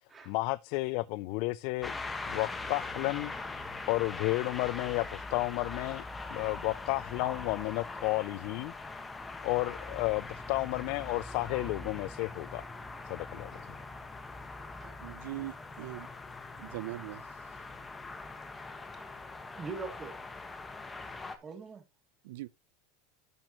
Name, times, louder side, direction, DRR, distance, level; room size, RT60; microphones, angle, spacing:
voice 1, 0.3-1.9 2.3-3.3 3.9-6.0 6.3-8.7 9.4-12.7 13.0-13.5, left 23 dB, 60° left, 0.4 m, -32 dB
sound 1, 1.8-21.4, left 3 dB, 15° left, 1.4 m, -42 dB
voice 2, 14.0-15.6 17.6-17.8 18.5-18.8 19.4-20.1 21.4-21.8, right 4 dB, 20° right, 2.8 m, -46 dB
voice 3, 15.0-16.1 16.6-17.2 22.2-22.5, right 17 dB, 75° right, 0.5 m, -40 dB
12.0 x 6.0 x 3.0 m
supercardioid pair, 130°, 0 cm